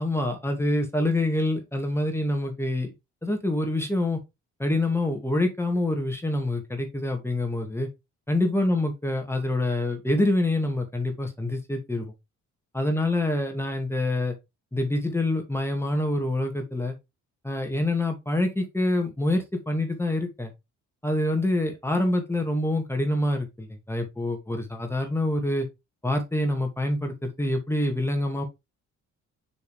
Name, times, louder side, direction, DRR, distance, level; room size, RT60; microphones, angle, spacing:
voice 1, 0.0-2.9 3.2-4.2 4.6-7.9 8.3-12.1 12.7-14.3 14.7-17.0 17.4-20.5 21.0-25.7 26.0-28.5, left 1 dB, 10° left, 2.2 m, -26 dB
6.6 x 6.5 x 3.3 m
cardioid pair, 90°, 30 cm